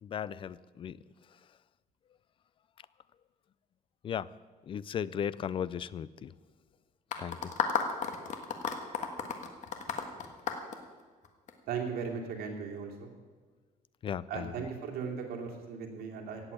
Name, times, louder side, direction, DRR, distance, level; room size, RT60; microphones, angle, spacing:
voice 1, 0.0-1.0 4.0-4.3 4.7-6.3 7.2-7.5 14.0-14.7, left 8 dB, 35° left, 19 dB, 0.4 m, -36 dB
sound 1, 7.1-11.5, left 6 dB, 55° left, 1.6 m, -33 dB
voice 2, 11.7-13.1 14.3-16.5, right 6 dB, 90° right, 1 dB, 2.9 m, -37 dB
16.5 x 8.2 x 8.6 m, 1.4 s
cardioid pair, 155°, 15 cm